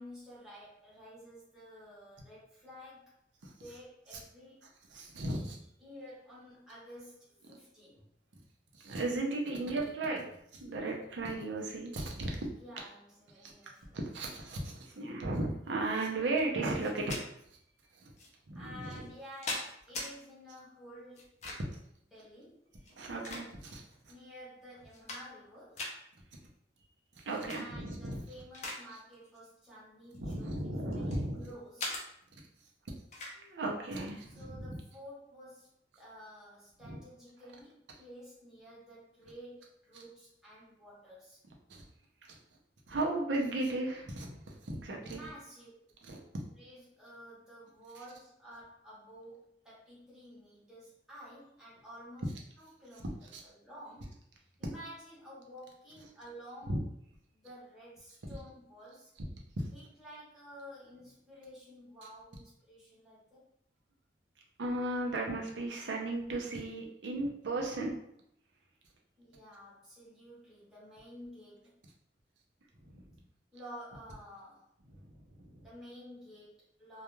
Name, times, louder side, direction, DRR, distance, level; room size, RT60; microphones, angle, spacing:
voice 1, 0.0-3.2 3.6-4.6 5.8-8.1 12.6-14.0 18.5-21.4 22.1-22.6 24.1-25.8 27.5-32.0 34.4-41.4 45.1-46.0 46.6-52.3 52.6-53.1 53.4-56.8 57.3-59.1 59.7-63.4 69.2-71.7 73.5-74.7 75.6-77.0, equal, 5° right, -8 dB, 0.9 m, -51 dB
voice 2, 4.9-5.6 8.7-10.3 10.5-12.5 13.4-13.5 13.9-17.2 17.9-18.1 18.5-19.1 21.7-21.8 22.9-24.1 27.2-28.2 30.1-31.5 33.4-34.8 36.8-37.0 41.7-41.8 42.3-42.4 42.9-45.2 46.0-46.2 53.3-53.4 59.6-59.7 64.6-68.0 72.8-73.0 74.9-75.6, right 2 dB, 80° right, 0 dB, 0.6 m, -36 dB
sound 1, 16.8-17.2 18.2-18.3 19.0-20.1 21.2-21.8 22.8-23.8 24.4-24.5 24.8-25.5 25.8-26.0 27.3-27.6 28.0-28.8 29.1-29.4 30.1-31.2 31.8-32.0 33.1-33.4, left 2 dB, 40° left, 0.5 m, -40 dB
2.3 x 2.3 x 3.0 m, 0.73 s
head